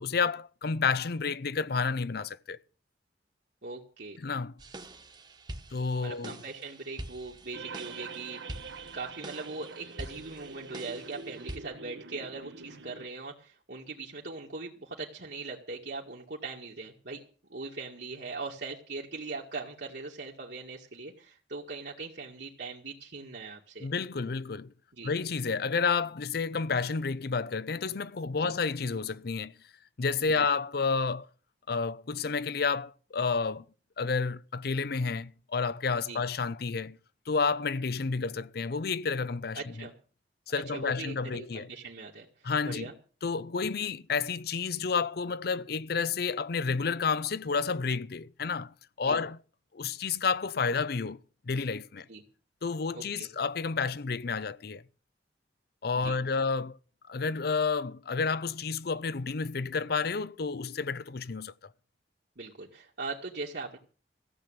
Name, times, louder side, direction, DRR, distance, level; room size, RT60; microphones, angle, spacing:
voice 1, 0.0-2.6 4.2-4.5 5.7-6.4 23.8-24.7 25.0-29.5 30.0-31.3 31.7-33.6 34.0-37.0 37.3-39.9 40.5-41.7 42.4-42.9 43.2-49.4 49.7-51.2 51.5-52.1 52.6-54.8 55.8-56.8 57.1-61.5, left 5 dB, 60° left, 0.6 m, -30 dB
voice 2, 3.6-4.2 6.0-8.4 8.9-17.2 17.5-23.9 24.9-25.1 28.4-28.5 30.3-30.5 36.1-36.2 39.6-39.9 40.7-42.3 42.6-42.9 49.0-49.2 52.1-52.2 52.9-53.3 55.9-56.2 62.4-63.8, right 3 dB, 65° right, 2.1 m, -40 dB
sound 1, 4.6-11.6, right 1 dB, 25° right, 1.4 m, -45 dB
sound 2, 7.5-13.1, right 4 dB, 90° right, 1.4 m, -45 dB
15.0 x 7.7 x 8.9 m
head